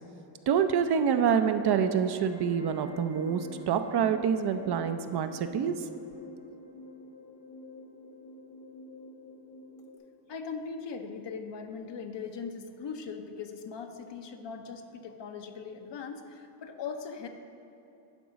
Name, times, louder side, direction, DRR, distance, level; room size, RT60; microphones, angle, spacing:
voice 1, 0.5-5.7, right 7 dB, 55° right, 8 dB, 0.6 m, -26 dB
sound 1, 2.0-10.0, left 2 dB, 85° left, 1.6 m, -48 dB
voice 2, 10.3-17.3, left 5 dB, 60° left, 5 dB, 0.9 m, -40 dB
11.0 x 3.8 x 5.1 m, 2.9 s
supercardioid pair, 70°, 49 cm